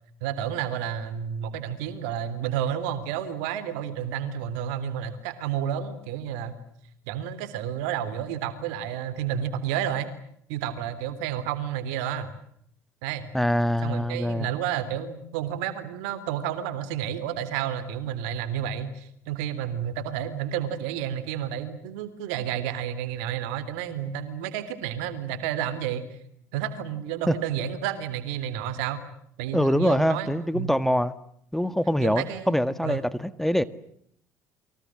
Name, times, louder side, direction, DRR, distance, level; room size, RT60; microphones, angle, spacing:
voice 1, 0.2-6.5 7.1-10.1 10.5-12.3 13.0-13.3 13.8-26.1 26.5-29.0 29.4-30.8 32.0-33.0, right 9 dB, 75° right, 13 dB, 3.5 m, -31 dB
voice 2, 13.3-14.5 27.3-27.4 29.5-31.1 31.5-33.6, equal, 5° left, 14 dB, 1.6 m, -24 dB
29.5 x 24.5 x 7.7 m, 0.70 s
hypercardioid pair, 60°, 8 cm